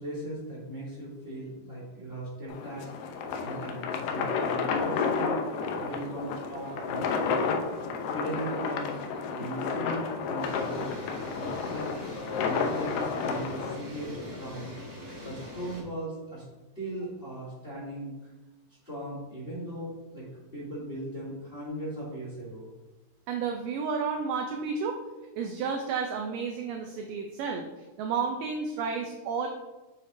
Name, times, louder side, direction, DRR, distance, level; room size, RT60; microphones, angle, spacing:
voice 1, 0.0-2.8 3.4-5.4 5.8-7.5 8.1-9.0 9.3-11.9 12.3-14.7 15.2-16.4 16.7-18.1 18.8-20.3 20.5-22.7, right 1 dB, 20° left, -8 dB, 2.0 m, -38 dB
sound 1, 2.5-13.7, left 5 dB, 80° left, 1.9 m, -31 dB
sound 2, 10.4-15.8, left 1 dB, 65° right, 0.8 m, -42 dB
voice 2, 23.3-25.0 25.4-27.6 28.0-29.5, right 5 dB, 85° right, 3 dB, 1.9 m, -31 dB
7.7 x 6.8 x 2.6 m, 1.1 s
omnidirectional pair, 4.5 m